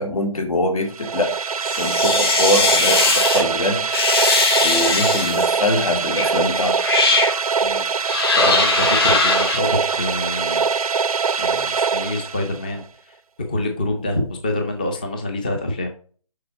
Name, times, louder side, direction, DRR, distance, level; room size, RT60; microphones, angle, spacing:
voice 1, 0.0-1.3 1.8-3.9 4.6-6.7 8.3-8.6, left 1 dB, 75° left, 4 dB, 2.6 m, -23 dB
sound 1, 0.9-12.8, right 5 dB, 90° right, 0.6 m, -22 dB
sound 2, 1.6-3.4 3.9-5.5 6.2-6.3 6.8-7.4 8.1-9.6, left 3 dB, 45° left, 2.2 m, -19 dB
voice 2, 8.1-10.7 11.4-13.1 13.5-15.9, left 1 dB, 15° left, 4 dB, 0.5 m, -27 dB
6.6 x 5.8 x 4.9 m, 0.43 s
hypercardioid pair, 170°, 18 cm